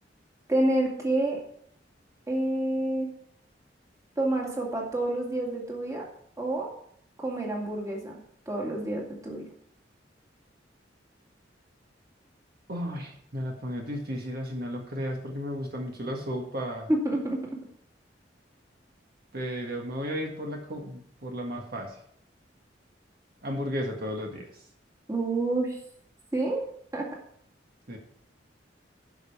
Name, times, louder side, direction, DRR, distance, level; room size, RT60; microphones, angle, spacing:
voice 1, 0.5-1.4 2.3-3.1 4.2-6.0 6.4-6.7 7.2-8.1 8.5-9.5 16.9-17.4 25.1-25.8 26.3-26.6 26.9-27.1, right 1 dB, 20° right, -1 dB, 2.2 m, -28 dB
voice 2, 12.7-16.9 19.3-22.0 23.4-24.5 27.9-28.0, equal, 55° right, 1 dB, 1.8 m, -34 dB
12.0 x 5.3 x 5.9 m, 0.65 s
head